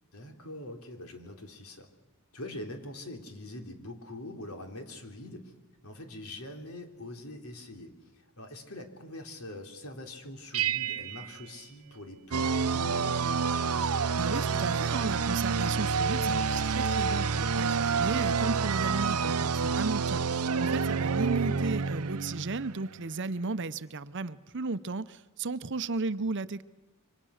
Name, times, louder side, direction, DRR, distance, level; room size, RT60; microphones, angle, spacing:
voice 1, 0.1-1.9 2.3-5.5 5.8-13.4, left 1 dB, 75° left, 4 dB, 3.6 m, -44 dB
sound 1, 10.5-12.8, right 12 dB, 70° right, 1.2 m, -35 dB
sound 2, 12.3-22.9, right 5 dB, 85° right, 0.8 m, -28 dB
voice 2, 14.2-26.6, right 3 dB, 55° right, 14 dB, 0.8 m, -34 dB
27.5 x 24.5 x 6.5 m, 1.1 s
head